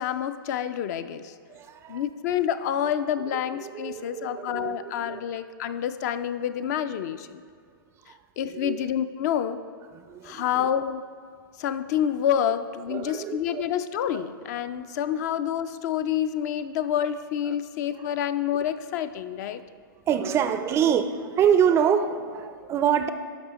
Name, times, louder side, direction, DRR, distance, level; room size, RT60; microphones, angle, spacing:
voice 1, 0.0-1.3 1.9-7.4 8.4-9.6 10.2-11.0 11.6-19.6, left 9 dB, 45° left, 11 dB, 0.4 m, -28 dB
voice 2, 1.5-2.0 3.3-5.2 8.4-8.9 9.9-10.7 12.9-13.6 14.1-14.2 20.1-23.1, right 8 dB, 20° right, 10 dB, 0.4 m, -26 dB
11.0 x 6.2 x 2.9 m, 2.2 s
hypercardioid pair, 120°, 12 cm